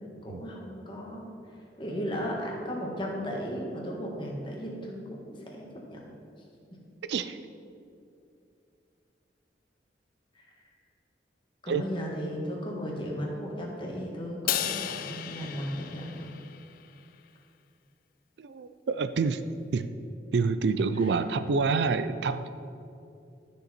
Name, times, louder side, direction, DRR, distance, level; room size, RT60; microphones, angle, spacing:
voice 1, 0.0-1.3 1.8-6.1 10.3-10.4 11.6-16.3 21.0-21.1, equal, 30° left, -2 dB, 1.6 m, -36 dB
voice 2, 7.1-7.4 11.7-11.8 18.4-19.5 19.7-19.9 20.3-22.5, right 4 dB, 70° right, 12 dB, 0.4 m, -27 dB
Crash cymbal, 14.5-16.9, left 11 dB, 50° left, 0.4 m, -34 dB
12.5 x 6.5 x 4.4 m, 2.6 s
head